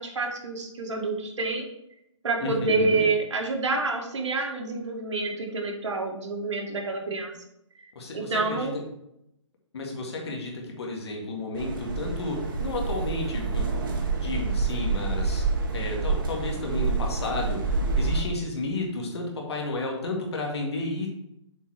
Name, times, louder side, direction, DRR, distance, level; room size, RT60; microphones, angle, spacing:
voice 1, 0.0-1.7 2.2-7.4 8.1-8.7, right 3 dB, 70° right, 1 dB, 1.7 m, -28 dB
voice 2, 2.4-3.0 8.0-8.7 9.7-13.7 14.2-15.5 15.7-21.1, left 2 dB, 55° left, 0 dB, 2.0 m, -32 dB
sound 1, 11.5-18.2, right 4 dB, 45° right, 1.2 m, -27 dB
7.2 x 4.0 x 4.4 m, 0.81 s
hypercardioid pair, 165°, 16 cm